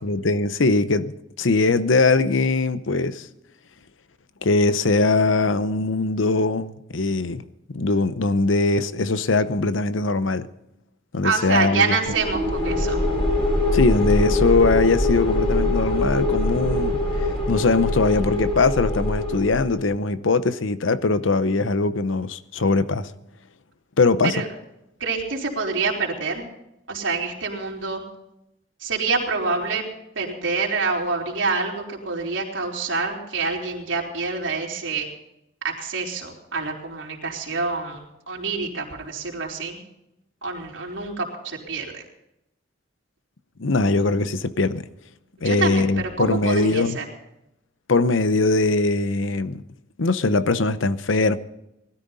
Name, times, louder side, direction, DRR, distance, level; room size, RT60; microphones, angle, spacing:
voice 1, 0.0-3.3 4.4-7.4 7.7-10.5 11.1-12.0 13.7-17.0 17.5-23.1 24.0-24.3 43.6-44.9 45.4-47.0 47.9-49.6 50.0-51.4, left 3 dB, 90° left, 0.8 m, -21 dB
voice 2, 11.2-13.0 24.2-24.5 25.0-26.4 26.9-28.0 28.8-29.8 30.1-35.1 35.6-39.8 40.4-42.0 45.4-45.9 46.2-47.0, right 4 dB, 80° right, 4.0 m, -26 dB
sound 1, 12.1-19.8, left 1 dB, 30° left, 5.0 m, -23 dB
20.0 x 13.5 x 4.1 m
head